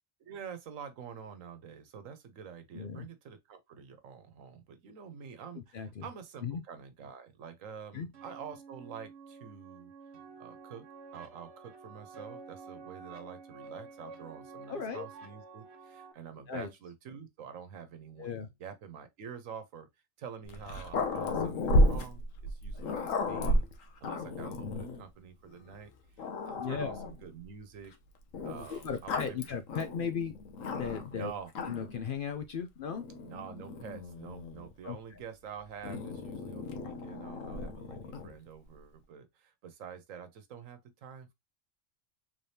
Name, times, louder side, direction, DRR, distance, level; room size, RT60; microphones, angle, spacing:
voice 1, 0.2-9.9 10.4-10.9 11.1-19.9 20.2-23.6 24.0-25.9 26.2-27.9 28.4-29.4 31.1-31.5 33.3-41.3, right 7 dB, 90° right, 1.2 m, -47 dB
voice 2, 2.7-3.1 5.7-6.1 6.4-6.6 7.9-8.1 14.7-15.1 16.5-16.7 18.2-18.5 26.6-26.9 28.7-30.3 30.7-31.3 31.7-33.1 34.8-35.0, left 6 dB, 60° left, 0.6 m, -36 dB
sound 1, 8.1-16.1, right 4 dB, 60° right, 1.0 m, -50 dB
Growling, 20.4-25.0 25.7-25.8 26.2-27.3 28.3-31.1 31.5-32.0 32.9-34.7 35.8-38.4, left 1 dB, 90° left, 1.2 m, -33 dB
3.8 x 3.3 x 2.7 m
omnidirectional pair, 1.3 m